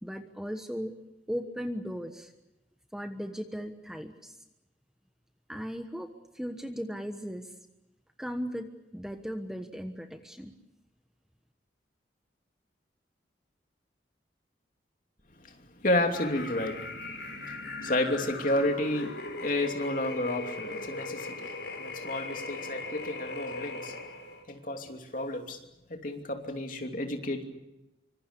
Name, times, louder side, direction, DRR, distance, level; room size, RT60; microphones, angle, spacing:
voice 1, 0.0-0.9 1.3-2.3 2.9-4.4 5.5-7.5 8.2-10.5, equal, 5° right, 6 dB, 1.2 m, -37 dB
voice 2, 15.4-17.1 17.5-17.6 17.8-21.5 21.8-24.0 24.5-25.6 25.9-27.4, left 1 dB, 45° left, 4 dB, 2.8 m, -31 dB
sound 1, 16.1-24.4, left 3 dB, 75° left, 5.5 m, -39 dB
25.5 x 25.0 x 6.9 m, 0.93 s
head